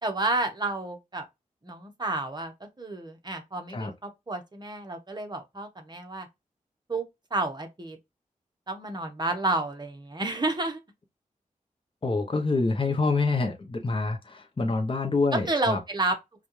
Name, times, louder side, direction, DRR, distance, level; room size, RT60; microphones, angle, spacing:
voice 1, 0.0-1.2 1.6-2.5 2.8-6.3 6.9-7.0 7.3-8.0 8.7-10.8 12.9-13.0 15.5-16.2, right 2 dB, 30° right, 1.3 m, -30 dB
voice 2, 12.0-15.8, left 3 dB, 40° left, 0.9 m, -26 dB
5.4 x 2.5 x 3.2 m
cardioid pair, 65°, 14 cm